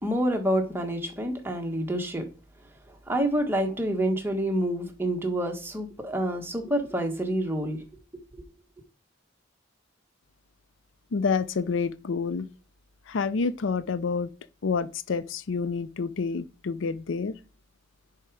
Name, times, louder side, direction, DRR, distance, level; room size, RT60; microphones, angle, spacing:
voice 1, 0.0-2.3 3.1-7.8 8.3-8.4, right 1 dB, 10° right, 1.4 m, -27 dB
voice 2, 11.1-12.5 13.1-14.3 14.6-17.3, left 5 dB, 70° left, 0.5 m, -28 dB
10.0 x 4.9 x 4.8 m
head